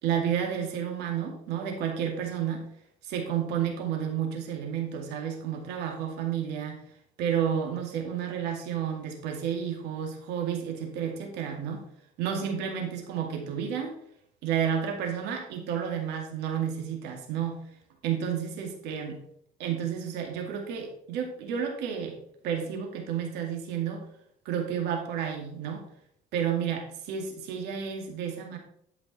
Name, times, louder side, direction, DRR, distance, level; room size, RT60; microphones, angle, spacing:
voice 1, 0.0-2.6 3.0-6.8 7.2-11.8 12.2-14.0 14.4-17.6 18.0-19.2 19.6-22.2 22.4-24.0 24.5-25.8 26.3-28.6, right 8 dB, 90° right, 2 dB, 2.2 m, -31 dB
11.5 x 5.3 x 4.2 m, 0.69 s
cardioid pair, 110°, 17 cm